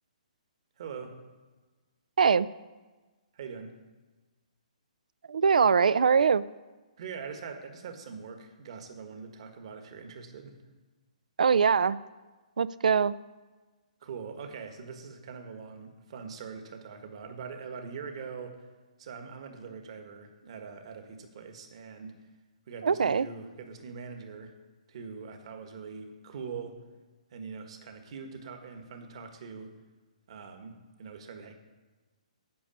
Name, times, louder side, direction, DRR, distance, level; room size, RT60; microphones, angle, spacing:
voice 1, 0.8-1.2 3.3-3.7 7.0-10.6 14.0-18.6 19.0-22.2 22.7-24.5 24.9-26.8 27.3-29.7 30.3-31.5, right 5 dB, 50° right, 6 dB, 1.6 m, -42 dB
voice 2, 2.2-2.5 5.3-6.4 11.4-12.0 12.6-13.2 22.8-23.3, right 6 dB, 80° right, 18 dB, 0.4 m, -22 dB
8.6 x 6.7 x 8.6 m, 1.3 s
hypercardioid pair, 160°, 4 cm